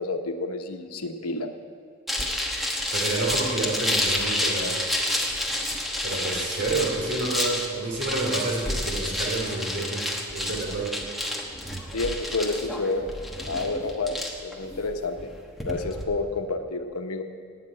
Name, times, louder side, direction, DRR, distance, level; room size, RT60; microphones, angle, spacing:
voice 1, 0.0-1.5 11.9-13.0 13.5-15.3 15.6-17.2, left 3 dB, 85° left, 6 dB, 1.1 m, -29 dB
sound 1, 2.1-16.0, left 1 dB, ahead, 1.1 m, -29 dB
voice 2, 2.9-4.8 6.0-10.0 10.3-10.9, right 2 dB, 50° right, -1 dB, 3.1 m, -29 dB
17.5 x 6.0 x 9.0 m, 2.2 s
head